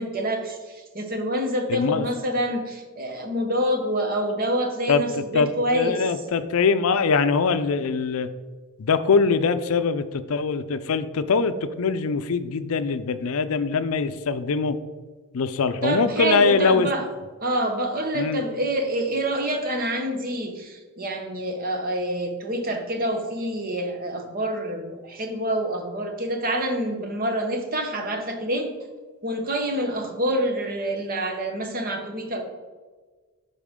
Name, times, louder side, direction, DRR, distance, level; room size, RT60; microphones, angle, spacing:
voice 1, 0.0-6.0 15.8-17.0 17.4-28.8 29.2-32.4, right 1 dB, 40° right, 4 dB, 1.0 m, -27 dB
voice 2, 1.7-2.1 4.9-5.0 5.3-8.3 8.8-14.8 15.3-16.9 18.1-18.4, left 5 dB, 70° left, 11 dB, 0.5 m, -22 dB
12.0 x 4.2 x 3.7 m, 1.4 s
head